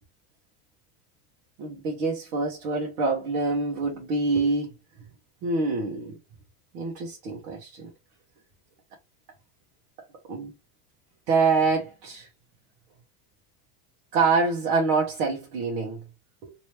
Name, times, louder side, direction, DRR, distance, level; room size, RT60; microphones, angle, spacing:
voice 1, 1.6-4.7 5.4-6.2 6.7-7.9 10.3-10.5 11.3-12.3 14.1-16.0 16.4-16.5, right 4 dB, 75° right, 1.2 m, -26 dB
3.2 x 3.0 x 2.9 m
cardioid pair, 165°, 45 cm